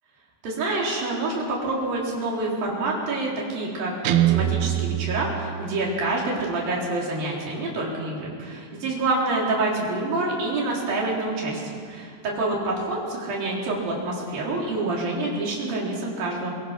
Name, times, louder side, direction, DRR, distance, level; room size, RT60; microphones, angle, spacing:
voice 1, 0.4-16.5, right 2 dB, 50° right, -3 dB, 5.3 m, -27 dB
Guitar, 4.0-6.1, right 14 dB, 85° right, 2.1 m, -24 dB
23.0 x 22.0 x 6.0 m, 2.1 s
omnidirectional pair, 5.4 m